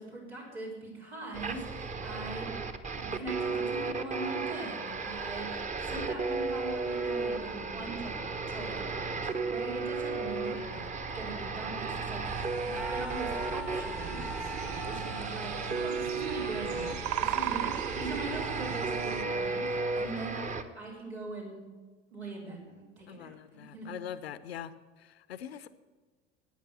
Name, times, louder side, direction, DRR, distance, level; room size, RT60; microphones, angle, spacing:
voice 1, 0.0-2.6 2.9-10.9 11.1-21.6 22.1-23.9, right 2 dB, 85° right, -4 dB, 4.5 m, -41 dB
sound 1, 1.3-20.6, right 4 dB, 25° right, 1.1 m, -34 dB
voice 2, 10.5-10.8 20.0-20.3 23.1-24.7 25.0-25.7, left 9 dB, 70° left, 15 dB, 0.8 m, -43 dB
sound 2, 12.2-19.2, right 12 dB, 55° right, 0.7 m, -39 dB
Screaming, 12.7-18.6, equal, 5° right, 0.3 m, -45 dB
13.5 x 9.4 x 8.0 m, 1.3 s
figure-of-eight pair, 70°, 32 cm